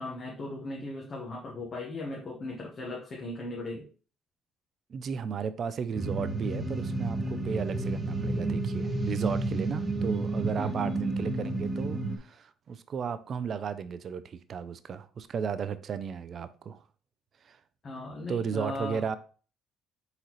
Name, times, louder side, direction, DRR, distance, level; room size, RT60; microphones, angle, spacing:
voice 1, 0.0-3.8 10.5-10.9 17.8-19.0, left 2 dB, 45° left, 1.2 m, -37 dB
voice 2, 4.9-16.8 17.4-17.6 18.3-19.2, right 6 dB, 50° right, 0.4 m, -34 dB
sound 1, 5.9-12.2, right 2 dB, 20° right, 0.8 m, -31 dB
4.1 x 3.8 x 3.0 m
supercardioid pair, 70°, 0 cm